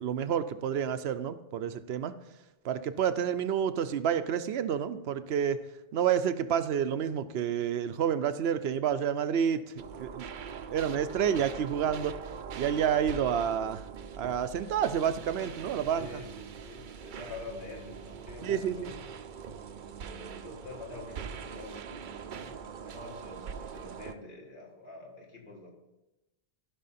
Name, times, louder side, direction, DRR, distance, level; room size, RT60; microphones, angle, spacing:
voice 1, 0.0-2.1 2.6-5.6 5.9-9.6 10.0-10.3 10.7-12.2 12.5-13.8 14.2-16.2 18.4-18.9, right 8 dB, 85° right, 12 dB, 0.8 m, -29 dB
sound 1, 9.8-24.2, right 7 dB, 55° right, 0.7 m, -43 dB
voice 2, 15.0-19.1 20.0-25.7, left 3 dB, 55° left, -2 dB, 2.0 m, -47 dB
15.0 x 5.7 x 4.2 m, 1.0 s
omnidirectional pair, 1.0 m